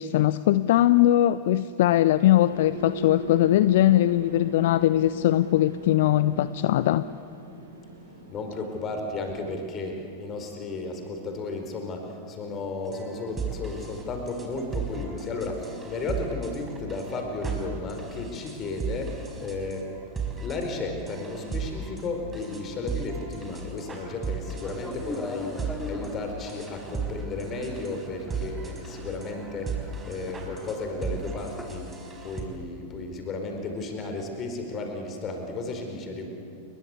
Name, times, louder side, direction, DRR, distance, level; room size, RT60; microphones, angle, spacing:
voice 1, 0.0-7.0, left 13 dB, 55° left, 16 dB, 0.5 m, -21 dB
sound 1, 2.3-11.5, equal, 75° right, 5.8 m, -40 dB
voice 2, 8.3-19.9 20.4-31.9 32.2-36.3, left 3 dB, 30° left, 5 dB, 4.7 m, -34 dB
sound 2, 12.9-32.4, right 4 dB, 15° right, 4.8 m, -36 dB
sound 3, 24.6-31.6, left 1 dB, 5° left, 3.5 m, -41 dB
29.0 x 22.5 x 8.4 m, 2.6 s
figure-of-eight pair, 90°, 0 cm